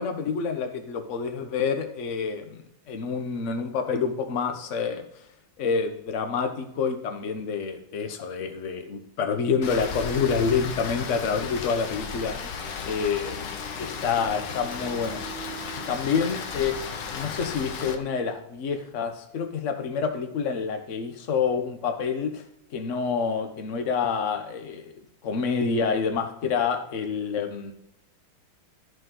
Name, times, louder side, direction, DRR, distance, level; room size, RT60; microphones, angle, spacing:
voice 1, 0.0-2.6 2.9-5.0 5.6-12.4 12.9-13.3 13.8-15.2 15.9-22.4 22.7-27.7, left 5 dB, 45° left, 7 dB, 1.1 m, -28 dB
Rain, 9.6-17.9, left 5 dB, 65° left, 1.5 m, -35 dB
13.0 x 5.2 x 3.8 m, 0.78 s
omnidirectional pair, 2.2 m